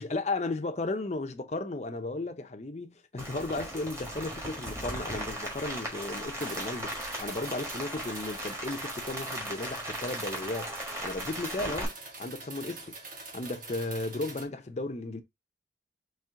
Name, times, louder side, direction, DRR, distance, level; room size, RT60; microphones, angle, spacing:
voice 1, 0.0-11.9 12.2-12.9 13.3-15.2, left 2 dB, 35° left, 0.6 m, -35 dB
Rain, 3.2-11.8, right 1 dB, 15° right, 1.4 m, -37 dB
sound 1, 6.4-14.4, right 3 dB, 45° right, 1.2 m, -45 dB
4.5 x 3.2 x 3.6 m
head